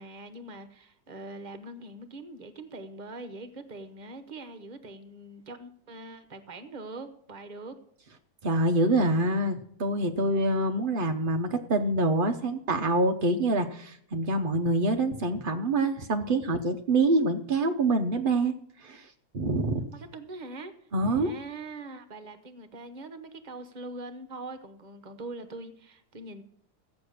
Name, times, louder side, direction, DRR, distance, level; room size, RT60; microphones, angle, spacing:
voice 1, 0.0-7.8 19.9-20.7 21.0-26.4, right 2 dB, 35° right, 10 dB, 0.7 m, -42 dB
voice 2, 8.4-18.5 18.8-19.1 19.3-19.9 20.9-21.3, right 2 dB, 70° right, 4 dB, 0.5 m, -26 dB
14.0 x 8.4 x 6.5 m, 0.68 s
omnidirectional pair, 2.1 m